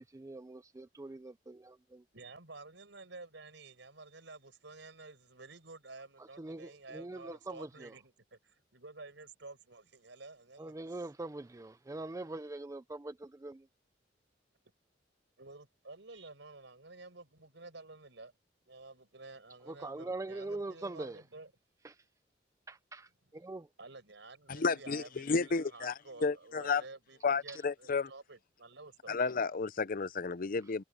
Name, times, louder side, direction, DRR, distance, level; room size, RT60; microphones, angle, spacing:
voice 1, 0.0-2.0 6.2-8.0 10.6-13.7 19.7-21.2 21.8-22.0 22.7-23.7 27.5-27.6, right 2 dB, 15° right, 0.4 m, -43 dB
voice 2, 2.1-11.1 15.4-18.3 18.7-21.5 23.8-29.2, right 3 dB, 75° right, 5.3 m, -51 dB
voice 3, 24.5-25.9 26.2-26.8 27.2-28.1 29.1-30.8, left 4 dB, 50° left, 0.6 m, -32 dB
head